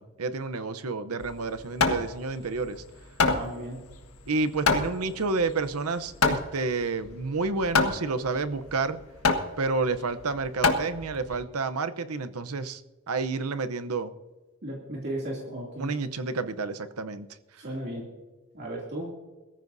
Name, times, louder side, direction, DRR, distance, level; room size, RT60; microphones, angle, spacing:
voice 1, 0.0-2.8 4.3-9.0 9.6-12.8 13.1-14.1 15.8-17.3, right 3 dB, 90° right, 11 dB, 0.8 m, -30 dB
Hammer, 1.2-11.4, left 4 dB, 85° left, 1.5 m, -28 dB
voice 2, 3.3-3.8 14.6-15.9 17.5-18.1 18.5-19.2, right 1 dB, 50° right, -3 dB, 2.7 m, -35 dB
22.0 x 14.5 x 2.7 m, 1.2 s
head